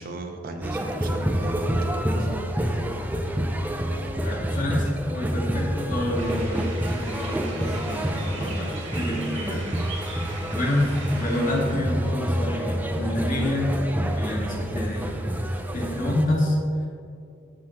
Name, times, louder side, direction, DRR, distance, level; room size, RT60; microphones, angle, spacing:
voice 1, 0.0-2.3, right 1 dB, 50° right, 5 dB, 0.7 m, -36 dB
sound 1, 0.6-16.3, equal, 10° right, 0.5 m, -28 dB
voice 2, 4.2-9.7 10.1-13.8 14.0-15.2 15.7-16.6, left 1 dB, 45° left, -3 dB, 1.8 m, -28 dB
sound 2, 6.1-11.8, right 3 dB, 85° right, 2.0 m, -40 dB
14.0 x 4.9 x 2.9 m, 2.4 s
head